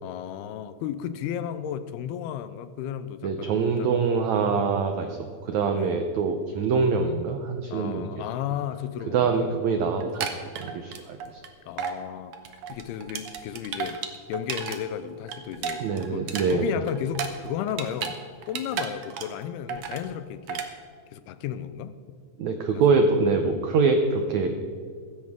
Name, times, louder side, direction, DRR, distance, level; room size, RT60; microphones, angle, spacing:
voice 1, 0.0-3.9 5.7-6.0 7.7-9.6 11.7-12.3 12.7-14.0 14.3-15.9 16.1-18.2 18.5-20.6 21.1-22.0 22.7-22.8, left 9 dB, 85° left, 12 dB, 2.7 m, -33 dB
voice 2, 3.2-5.2 5.4-8.1 9.1-10.3 10.6-11.4 15.8-16.7 22.4-24.5, right 4 dB, 85° right, 5 dB, 1.6 m, -24 dB
sound 1, 10.0-11.5 11.8-12.0 12.3-14.8 15.1-18.2 18.4-19.4 19.7-20.1 20.5-20.7, right 7 dB, 65° right, 1.7 m, -33 dB
16.0 x 14.5 x 3.6 m, 2.1 s
omnidirectional pair, 4.4 m